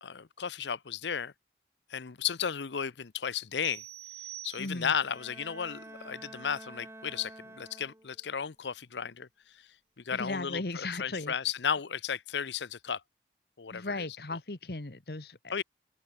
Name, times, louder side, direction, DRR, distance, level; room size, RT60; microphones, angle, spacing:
voice 1, 0.0-1.3 1.9-3.8 4.4-9.7 10.0-13.0 13.6-13.9 14.3-14.4 15.5-15.6, left 7 dB, 90° left, 0.7 m, -34 dB
sound 1, 3.6-5.2, right 13 dB, 70° right, 2.6 m, -46 dB
voice 2, 4.6-4.9 10.1-11.3 13.7-15.6, left 2 dB, 65° left, 1.3 m, -37 dB
Bowed string instrument, 4.9-8.3, right 2 dB, 15° right, 1.9 m, -49 dB
open air
head